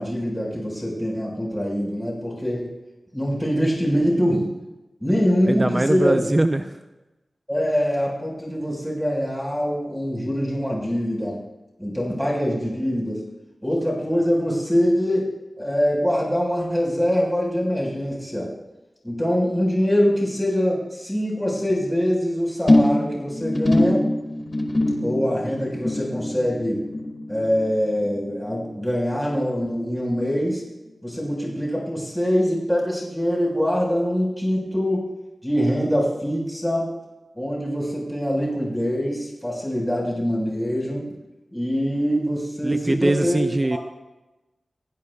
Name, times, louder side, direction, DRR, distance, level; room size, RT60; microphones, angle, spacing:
voice 1, 0.0-2.7 3.1-4.5 5.0-6.2 7.5-11.4 11.8-13.2 13.6-15.3 15.6-18.5 19.0-24.1 25.0-26.8 27.3-30.6 31.0-35.1 35.4-36.9 37.3-41.1 41.5-43.4 43.7-43.8, equal, 5° left, -4 dB, 4.9 m, -24 dB
voice 2, 5.5-6.7 42.6-43.8, right 1 dB, 25° right, 7 dB, 0.6 m, -22 dB
sound 1, 22.7-29.3 29.5-30.0 30.3-30.4, left 1 dB, 35° left, 2.0 m, -24 dB
28.0 x 16.5 x 2.4 m, 1.1 s
wide cardioid pair, 95°, 0 cm